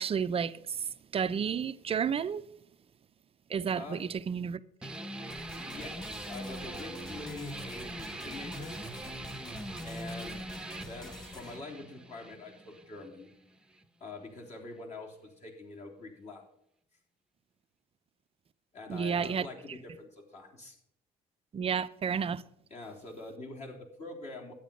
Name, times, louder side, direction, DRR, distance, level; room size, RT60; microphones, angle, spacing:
voice 1, 0.0-2.4 3.5-4.9 18.9-19.5 21.5-22.4, right 7 dB, 35° right, 0.6 m, -31 dB
sound 1, 4.8-13.9, right 1 dB, 5° right, 0.9 m, -42 dB
sound 2, 5.3-11.6, left 1 dB, 25° left, 3.6 m, -50 dB
voice 2, 5.6-8.7 9.8-10.5 10.8-13.3 14.0-16.4 18.7-20.8 22.7-24.5, left 3 dB, 40° left, 3.4 m, -45 dB
12.0 x 9.3 x 5.2 m
cardioid pair, 110°, 17 cm